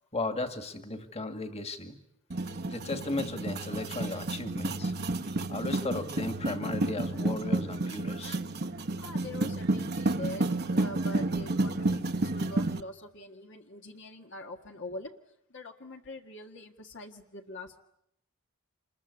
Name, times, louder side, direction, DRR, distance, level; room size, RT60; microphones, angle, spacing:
voice 1, 0.1-2.0 2.7-4.9 5.5-8.4, left 2 dB, 30° left, 8 dB, 2.1 m, -35 dB
sound 1, 2.3-12.8, right 2 dB, 50° right, 1.1 m, -31 dB
voice 2, 9.0-15.1 15.5-17.8, left 1 dB, 60° left, 3 dB, 1.7 m, -43 dB
27.5 x 21.5 x 9.7 m, 0.77 s
head